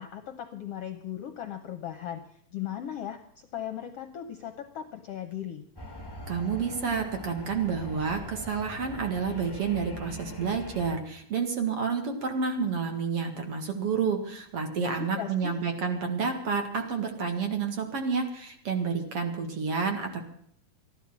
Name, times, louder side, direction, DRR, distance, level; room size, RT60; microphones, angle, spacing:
voice 1, 0.0-2.2 2.5-3.2 3.5-5.6 14.7-15.5, left 10 dB, 70° left, 7 dB, 1.5 m, -37 dB
sound 1, 5.8-11.0, left 1 dB, 30° left, 0.4 m, -42 dB
voice 2, 6.3-20.2, right 5 dB, 50° right, 4 dB, 2.6 m, -29 dB
14.0 x 11.0 x 7.4 m, 0.68 s
omnidirectional pair, 3.8 m